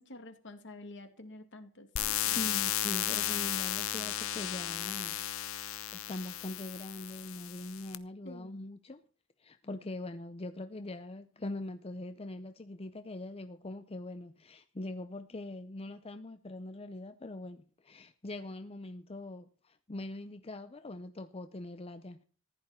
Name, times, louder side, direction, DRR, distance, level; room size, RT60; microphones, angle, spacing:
voice 1, 0.0-2.4 8.2-8.6, left 2 dB, 60° left, 2.2 m, -49 dB
sound 1, 2.0-8.0, left 12 dB, 75° left, 0.9 m, -34 dB
voice 2, 2.4-5.2 5.9-9.0 9.4-22.2, left 2 dB, 30° left, 0.6 m, -42 dB
15.0 x 11.5 x 5.7 m
head